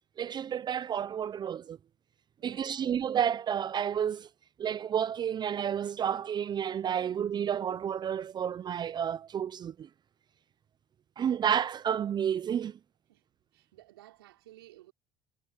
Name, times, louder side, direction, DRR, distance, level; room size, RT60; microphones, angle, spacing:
voice 1, 0.2-1.8 2.4-4.3 4.6-9.9 11.2-12.8, right 8 dB, 35° right, 0.8 m, -31 dB
voice 2, 2.4-2.9 11.2-11.4 13.1-13.2 13.5-14.9, right 16 dB, 80° right, 4.3 m, -55 dB
hypercardioid pair, 70°, 12 cm